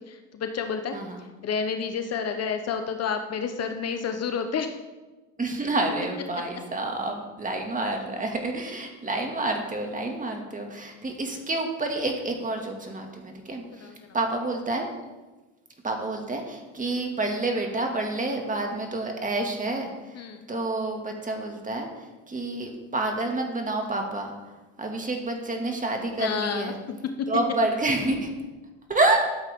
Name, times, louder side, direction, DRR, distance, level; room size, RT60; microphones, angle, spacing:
voice 1, 0.1-1.0 1.4-4.7 13.7-14.2 20.1-20.5 26.2-26.7 27.2-27.3, left 6 dB, 40° left, 7 dB, 1.0 m, -30 dB
voice 2, 5.4-14.9 15.8-24.3 24.8-26.8 27.3-28.4 28.9-29.3, right 2 dB, 20° right, 2 dB, 2.3 m, -28 dB
12.5 x 8.1 x 3.7 m, 1.2 s
hypercardioid pair, 80°, 37 cm